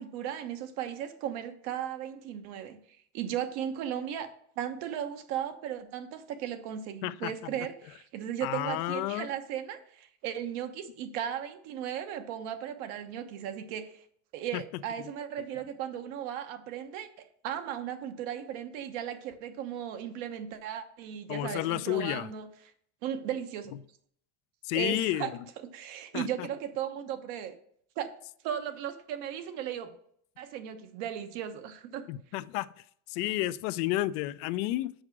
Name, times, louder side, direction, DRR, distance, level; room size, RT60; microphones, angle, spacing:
voice 1, 0.0-2.8 3.1-14.0 14.3-22.5 23.0-23.7 24.7-25.3 25.6-27.5 28.0-28.1 28.4-29.9 30.4-32.0, right 9 dB, 75° right, 1.1 m, -36 dB
voice 2, 7.0-7.5 8.4-9.3 14.5-14.6 15.4-15.5 21.3-22.3 24.6-25.4 26.1-26.5 32.1-32.7 33.1-34.9, left 15 dB, 70° left, 0.5 m, -31 dB
6.4 x 4.9 x 5.9 m
supercardioid pair, 115°, 37 cm